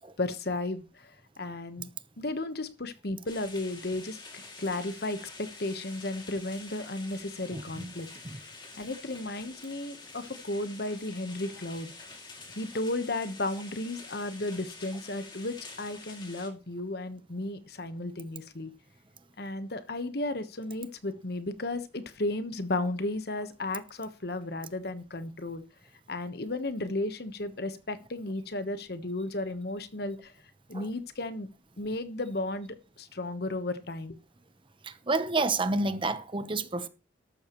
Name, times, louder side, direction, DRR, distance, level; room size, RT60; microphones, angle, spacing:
voice 1, 0.2-1.1 1.4-1.9 2.2-8.1 8.8-11.9 12.5-18.7 19.4-25.6 26.1-30.3 30.7-31.5 31.8-34.2, left 2 dB, 60° left, 1.2 m, -34 dB
sound 1, 3.3-16.5, left 3 dB, 25° left, 2.6 m, -47 dB
voice 2, 7.5-7.9 8.2-8.4 30.7-30.9 34.8-36.9, right 3 dB, 30° right, 1.0 m, -29 dB
13.5 x 12.0 x 3.1 m
head